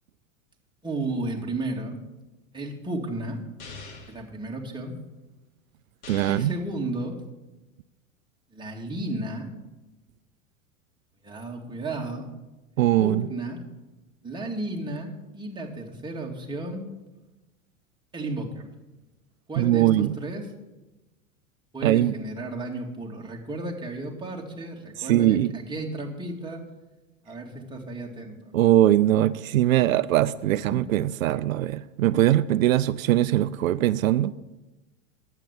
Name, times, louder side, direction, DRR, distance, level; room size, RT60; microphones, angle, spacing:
voice 1, 0.8-2.0 2.5-3.4 4.1-5.0 6.3-7.2 8.5-9.5 11.2-12.3 13.0-13.6 14.2-16.8 18.1-18.7 19.5-20.5 21.7-26.6 27.3-28.5 30.7-30.8, right 2 dB, 10° right, 0 dB, 2.3 m, -33 dB
sound 1, 3.6-4.2 6.0-6.6, left 4 dB, 55° left, 2.4 m, -42 dB
voice 2, 6.1-6.5 12.8-13.2 19.6-20.1 21.8-22.1 25.0-25.5 28.5-34.3, right 13 dB, 80° right, 17 dB, 0.5 m, -21 dB
10.5 x 8.2 x 7.3 m, 1.1 s
hypercardioid pair, 100°, 40 cm